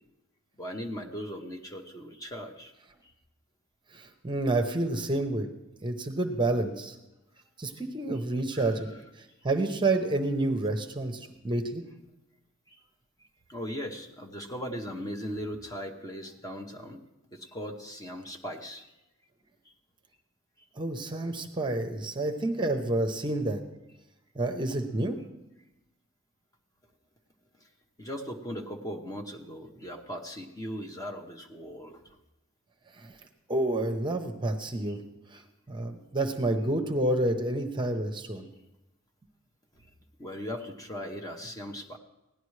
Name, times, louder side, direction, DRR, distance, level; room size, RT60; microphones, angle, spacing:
voice 1, 0.6-2.7 8.5-8.9 12.7-12.8 13.5-17.0 17.3-18.9 28.0-32.0 34.9-35.0 40.2-42.0, equal, 15° left, 3 dB, 0.8 m, -38 dB
voice 2, 3.9-5.5 5.8-7.0 7.6-8.9 9.4-11.8 20.8-23.6 24.3-25.2 33.0-33.1 33.5-35.0 35.3-35.4 35.7-38.5, right 2 dB, 20° right, 5 dB, 0.8 m, -29 dB
16.5 x 11.0 x 3.2 m, 0.96 s
head